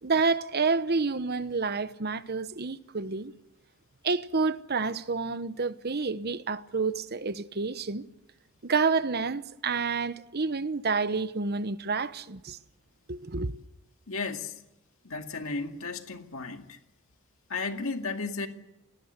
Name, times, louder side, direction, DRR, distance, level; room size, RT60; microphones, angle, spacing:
voice 1, 0.0-3.3 4.0-8.0 8.6-12.6 13.1-13.5, right 4 dB, 45° right, 1.0 m, -29 dB
voice 2, 14.1-14.6 15.0-16.8 17.5-18.5, left 4 dB, 65° left, 2.2 m, -34 dB
27.0 x 19.5 x 8.2 m
head